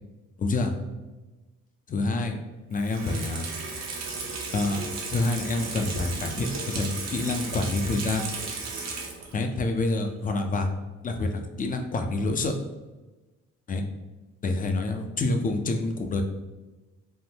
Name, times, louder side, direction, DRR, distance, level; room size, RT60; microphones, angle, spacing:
voice 1, 0.4-0.7 1.9-2.4 2.7-3.5 4.5-4.8 5.1-8.3 9.3-10.7 11.0-12.6 13.7-13.8 14.4-16.2, left 2 dB, 30° left, 5 dB, 0.4 m, -27 dB
Water tap faucet / Sink (filling or washing), 2.7-9.5 9.8-9.9, right 4 dB, 60° right, 0.7 m, -35 dB
3.5 x 2.1 x 2.7 m, 1.2 s
cardioid pair, 90°, 30 cm